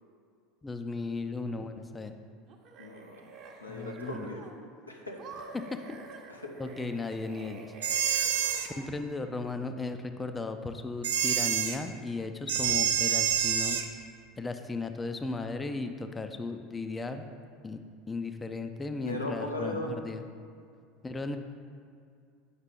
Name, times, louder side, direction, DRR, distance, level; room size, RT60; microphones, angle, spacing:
voice 1, 0.6-2.2 3.7-4.3 5.5-6.0 6.6-7.7 8.8-13.8 14.4-17.3 17.6-17.8 18.1-20.2 21.0-21.4, left 3 dB, 15° left, 7 dB, 0.5 m, -36 dB
sound 1, 2.5-4.7 5.2-9.1, right 4 dB, 40° right, 0.8 m, -48 dB
voice 2, 2.8-4.4 4.9-5.4 6.3-6.5 19.0-20.0, left 1 dB, 90° left, 0 dB, 0.7 m, -38 dB
sound 2, 7.8-8.7 11.0-11.8 12.5-13.9, right 8 dB, 70° right, 0.5 m, -27 dB
8.1 x 5.5 x 3.7 m, 2.3 s
figure-of-eight pair, 75°, 0 cm